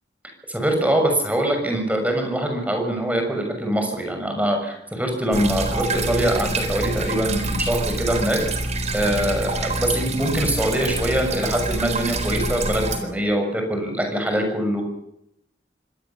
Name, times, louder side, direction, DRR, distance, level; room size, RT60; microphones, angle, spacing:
voice 1, 0.5-8.4 8.9-14.8, right 1 dB, 10° right, 3 dB, 6.5 m, -23 dB
sound 1, 5.3-13.0, right 2 dB, 40° right, 4.2 m, -26 dB
25.5 x 18.5 x 7.2 m, 0.76 s
head